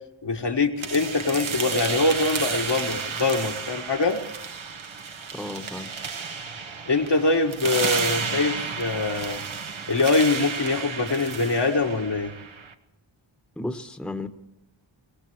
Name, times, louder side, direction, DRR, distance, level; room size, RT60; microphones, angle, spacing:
voice 1, 0.2-4.2 6.9-9.4 9.9-12.3, left 3 dB, 60° left, 3 dB, 1.7 m, -23 dB
sound 1, 0.8-12.7, right 5 dB, 80° right, 1.3 m, -32 dB
voice 2, 5.3-5.9 13.6-14.3, left 2 dB, ahead, 7 dB, 1.2 m, -33 dB
23.5 x 18.5 x 3.2 m, 0.94 s
wide cardioid pair, 80°, 48 cm